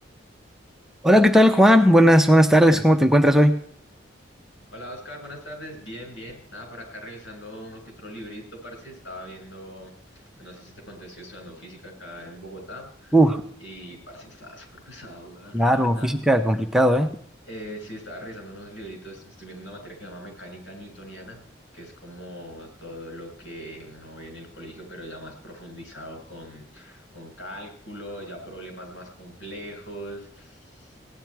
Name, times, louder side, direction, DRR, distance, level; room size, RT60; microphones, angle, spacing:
voice 1, 1.0-3.6 13.1-13.4 15.5-17.1, equal, ahead, 5 dB, 0.7 m, -16 dB
voice 2, 4.7-13.2 13.6-16.1 17.5-21.4 21.7-30.9, equal, 70° left, 1 dB, 5.7 m, -41 dB
17.0 x 10.5 x 4.6 m, 0.64 s
head